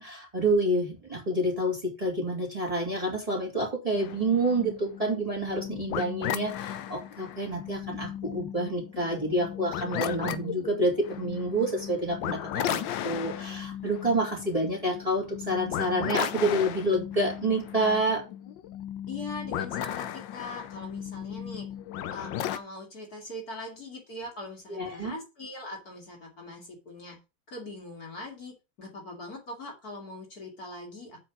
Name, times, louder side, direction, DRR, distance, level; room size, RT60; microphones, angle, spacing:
voice 1, 0.0-18.2 24.7-25.1, right 1 dB, 15° right, -1 dB, 2.8 m, -28 dB
sound 1, 4.0-22.6, left 11 dB, 75° left, 1.4 m, -36 dB
voice 2, 19.1-21.7 22.1-27.2 27.5-31.2, left 2 dB, 50° left, 0 dB, 2.6 m, -41 dB
7.7 x 5.0 x 6.0 m, 0.27 s
omnidirectional pair, 2.2 m